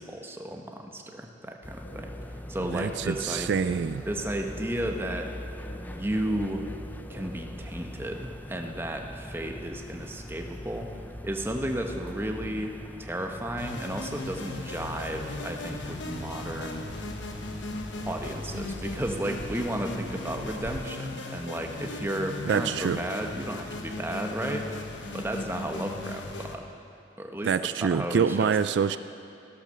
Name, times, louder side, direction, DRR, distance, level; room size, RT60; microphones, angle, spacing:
voice 1, 0.0-3.5 4.0-5.3 5.8-6.7 7.1-10.9 11.2-12.7 13.0-16.8 18.0-24.8 25.1-26.6 27.2-28.5, right 1 dB, 15° right, 3 dB, 1.0 m, -33 dB
sound 1, 1.6-20.9, left 1 dB, 10° left, 0.5 m, -41 dB
sound 2, 1.8-7.8, equal, 60° left, 4.5 m, -47 dB
voice 2, 2.7-4.1 22.5-23.0 27.4-29.0, right 6 dB, 70° right, 13 dB, 0.3 m, -26 dB
sound 3, 13.6-26.5, left 2 dB, 85° left, 1.2 m, -37 dB
15.5 x 11.5 x 6.8 m, 2.6 s
head